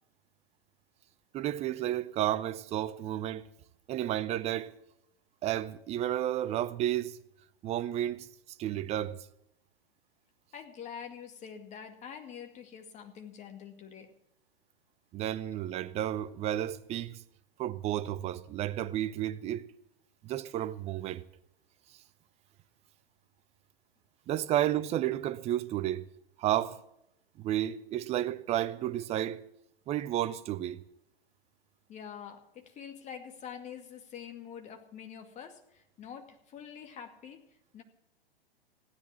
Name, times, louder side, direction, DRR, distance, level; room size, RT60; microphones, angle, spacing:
voice 1, 1.3-3.5 3.9-4.7 5.4-7.2 7.6-8.3 8.6-9.3 15.1-17.2 17.6-19.6 20.2-21.2 24.3-26.0 26.4-26.8 27.4-29.4 29.9-30.8, right 12 dB, 20° right, 0.7 m, -32 dB
voice 2, 10.5-14.1 31.9-37.4 37.7-37.8, left 8 dB, 25° left, 2.2 m, -46 dB
16.5 x 10.0 x 7.5 m
figure-of-eight pair, 115°, 31 cm